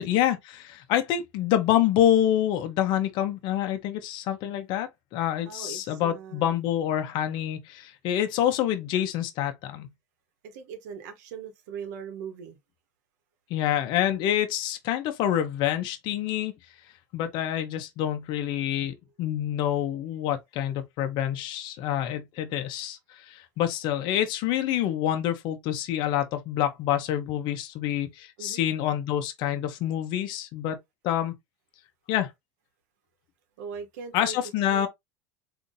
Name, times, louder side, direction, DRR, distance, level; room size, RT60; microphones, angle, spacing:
voice 1, 0.0-9.9 13.5-16.5 17.1-30.8 31.0-31.3 32.1-32.3 34.1-34.9, left 11 dB, 60° left, 0.8 m, -27 dB
voice 2, 5.4-6.6 10.4-12.6 28.4-28.7 33.6-34.4 34.7-34.9, right 6 dB, 75° right, 1.0 m, -40 dB
3.8 x 2.8 x 2.6 m
supercardioid pair, 100°, 9 cm